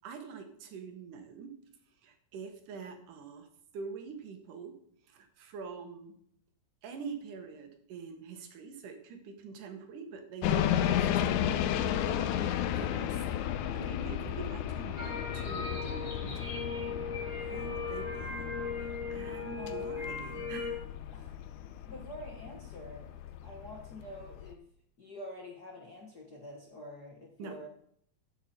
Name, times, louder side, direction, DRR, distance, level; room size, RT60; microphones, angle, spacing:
voice 1, 0.0-1.5 2.0-3.5 3.7-4.8 5.0-6.1 6.8-13.3 13.7-16.6 17.4-20.8 27.4-27.6, right 5 dB, 90° right, 6 dB, 3.0 m, -45 dB
sound 1, 10.4-24.5, left 10 dB, 80° left, 2.1 m, -34 dB
sound 2, 15.0-20.7, left 4 dB, 35° left, 2.9 m, -38 dB
voice 2, 19.5-19.9 21.1-21.4 21.8-23.1 23.4-24.7 25.0-27.7, left 1 dB, 50° left, 0 dB, 1.2 m, -47 dB
14.0 x 7.9 x 4.4 m, 0.66 s
omnidirectional pair, 3.6 m